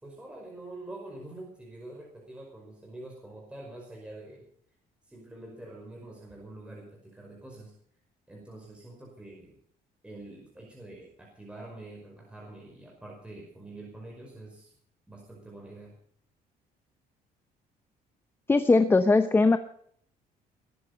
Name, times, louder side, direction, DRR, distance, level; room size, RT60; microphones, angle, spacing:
voice 1, 0.0-4.4 5.0-7.7 8.3-9.5 10.0-14.7 15.1-15.9, right 2 dB, 5° right, -1 dB, 5.3 m, -45 dB
voice 2, 18.5-19.6, left 3 dB, 15° left, 10 dB, 0.8 m, -20 dB
21.5 x 10.5 x 5.4 m, 0.63 s
cardioid pair, 135°, 16 cm